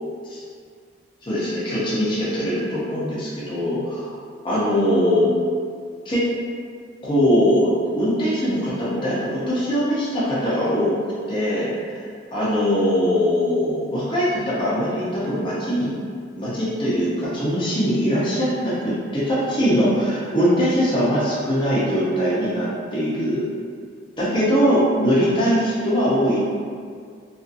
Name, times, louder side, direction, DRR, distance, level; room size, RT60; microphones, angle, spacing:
voice 1, 1.2-4.1 4.4-5.3 6.0-6.2 7.0-10.9 11.3-11.7 12.0-16.0 16.4-23.4 24.2-26.4, equal, 25° left, -10 dB, 0.5 m, -21 dB
2.6 x 2.4 x 2.4 m, 2.1 s
head